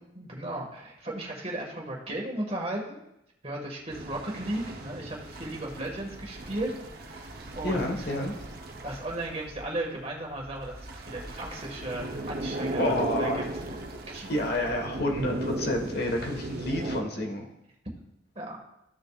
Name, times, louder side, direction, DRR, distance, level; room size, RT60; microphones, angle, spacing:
voice 1, 0.2-3.0 3.4-6.7 7.1-8.1 8.8-13.5 14.0-14.3 18.4-18.6, right 1 dB, 35° right, -1 dB, 1.8 m, -35 dB
sound 1, 3.9-17.0, right 1 dB, 55° right, 0.9 m, -37 dB
voice 2, 7.6-8.5 12.8-13.5 14.3-17.5, left 1 dB, 55° left, 2 dB, 1.5 m, -29 dB
14.0 x 6.6 x 2.4 m, 0.84 s
head